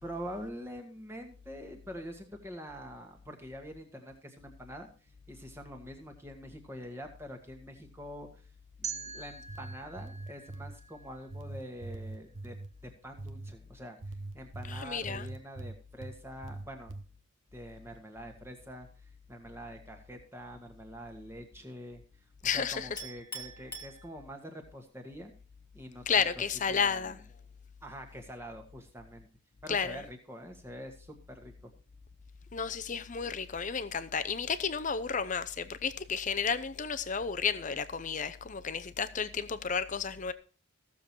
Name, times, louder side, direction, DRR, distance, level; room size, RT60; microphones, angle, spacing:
voice 1, 0.0-4.9 5.3-8.4 8.8-12.6 12.8-16.9 17.5-18.9 19.3-22.0 22.5-25.3 25.7-27.2 27.8-29.3 29.6-31.7, equal, 10° right, 1.7 m, -45 dB
sound 1, 8.8-11.8, right 6 dB, 30° right, 1.5 m, -44 dB
sound 2, 9.3-10.8 11.3-12.7 13.2-13.5 14.0-16.1 16.4-17.0, right 2 dB, 55° right, 1.0 m, -42 dB
voice 2, 14.7-15.3 22.4-22.9 26.1-27.2 29.7-30.0 32.5-40.3, left 6 dB, 35° left, 0.6 m, -32 dB
Chink clink, 23.0-24.6, right 1 dB, 10° left, 2.1 m, -44 dB
15.5 x 7.1 x 4.5 m
head